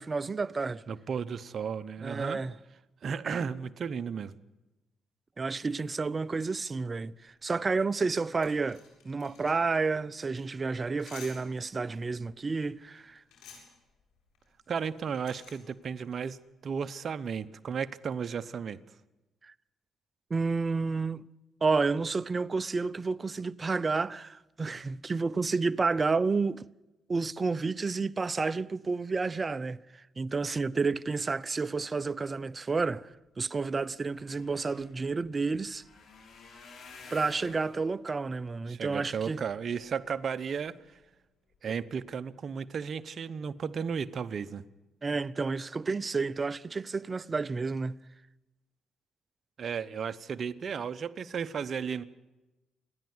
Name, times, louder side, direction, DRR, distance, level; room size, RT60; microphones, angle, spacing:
voice 1, 0.0-0.8 2.0-2.5 5.4-13.2 19.4-19.5 20.3-21.2 21.6-26.6 27.1-35.8 37.1-39.4 45.0-48.0, right 4 dB, 30° right, 0.6 m, -30 dB
voice 2, 0.9-2.4 3.0-4.3 14.7-16.4 16.6-18.8 38.7-40.7 41.6-44.6 49.6-52.0, right 6 dB, 50° right, 0.9 m, -34 dB
sound 1, 7.1-16.4, left 6 dB, 85° left, 7.8 m, -55 dB
sound 2, 33.9-40.1 40.7-41.1 41.5-41.7 42.0-42.1, left 4 dB, 65° left, 6.1 m, -54 dB
28.0 x 10.5 x 9.6 m
cardioid pair, 90°, 0 cm